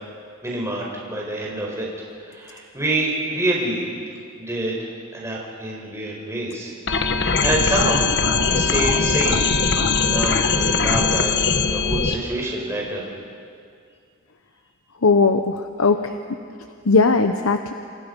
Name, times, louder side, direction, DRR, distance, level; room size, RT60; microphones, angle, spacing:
voice 1, 0.4-1.9 2.2-3.9 4.4-6.7 7.1-8.0 8.4-9.4 10.0-11.3 11.7-13.0, right 1 dB, 15° right, -3 dB, 4.8 m, -26 dB
sound 1, 6.9-12.2, left 5 dB, 55° left, 1.5 m, -20 dB
voice 2, 15.0-16.0 16.9-17.7, left 4 dB, 90° left, 6 dB, 1.0 m, -18 dB
28.5 x 28.0 x 5.4 m, 2.3 s
head